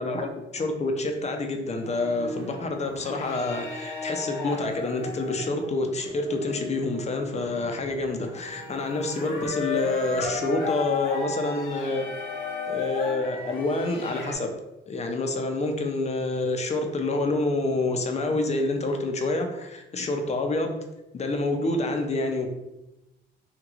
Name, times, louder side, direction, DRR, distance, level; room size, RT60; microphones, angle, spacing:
voice 1, 0.0-12.1 12.7-14.6 14.9-20.8 21.1-22.5, left 2 dB, 35° left, 4 dB, 0.5 m, -27 dB
sound 1, 1.8-14.3, left 3 dB, 85° left, 0.7 m, -35 dB
3.0 x 2.9 x 2.4 m, 0.93 s
cardioid pair, 90°, 20 cm